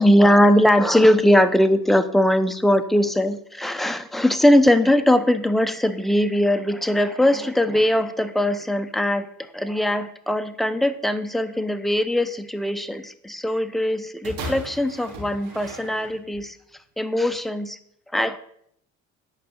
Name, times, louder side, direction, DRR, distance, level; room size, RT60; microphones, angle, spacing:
voice 1, 0.0-9.3 9.5-16.6 17.0-17.8 18.1-18.4, left 1 dB, ahead, 10 dB, 0.9 m, -20 dB
sound 1, 14.2-16.5 17.3-17.4, right 1 dB, 65° right, 3.3 m, -36 dB
10.5 x 5.2 x 8.0 m, 0.70 s
supercardioid pair, 70°, 37 cm